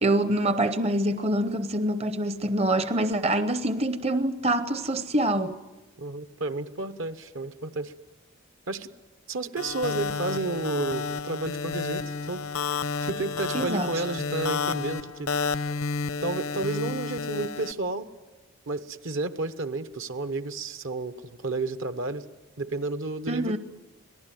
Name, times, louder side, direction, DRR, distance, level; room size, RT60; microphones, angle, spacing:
voice 1, 0.0-5.5 13.5-13.9 23.3-23.6, right 1 dB, 30° right, 0.8 m, -25 dB
voice 2, 6.0-7.9 8.7-8.9 9.3-12.4 13.0-15.3 16.2-18.1 18.7-21.1 21.4-22.2 22.6-23.6, right 3 dB, 60° right, 1.1 m, -31 dB
sound 1, 9.6-17.7, left 5 dB, 70° left, 0.7 m, -31 dB
26.0 x 18.5 x 9.3 m
head